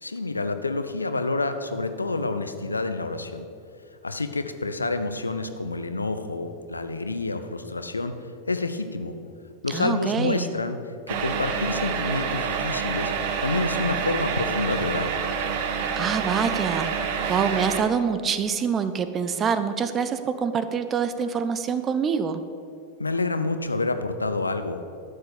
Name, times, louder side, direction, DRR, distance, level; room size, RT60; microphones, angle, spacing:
voice 1, 0.0-3.5 4.0-8.2 8.5-9.2 9.6-10.8 11.1-15.1 23.0-24.8, left 3 dB, 80° left, 9 dB, 0.7 m, -28 dB
voice 2, 9.7-10.5 16.0-22.4, right 6 dB, 25° right, 11 dB, 0.8 m, -26 dB
sound 1, 11.1-17.8, right 6 dB, 50° right, 1.1 m, -27 dB
12.0 x 6.5 x 8.2 m, 2.5 s
figure-of-eight pair, 90°, 0 cm